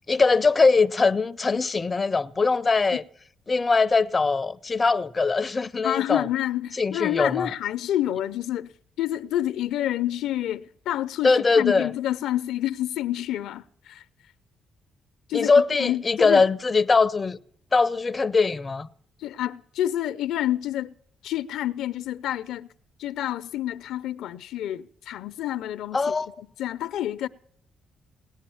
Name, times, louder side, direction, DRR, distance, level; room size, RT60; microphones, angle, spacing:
voice 1, 0.1-3.0 3.5-6.2 6.8-7.5 11.2-11.9 15.3-17.4 17.7-18.9 25.9-26.3, left 4 dB, 30° left, 0.5 m, -21 dB
voice 2, 5.8-8.7 9.0-14.0 15.3-15.5 15.8-16.4 19.2-20.9 21.2-22.7 23.0-26.1 26.6-27.3, left 13 dB, 85° left, 0.5 m, -28 dB
18.0 x 10.0 x 7.1 m
cardioid pair, 90°, 0 cm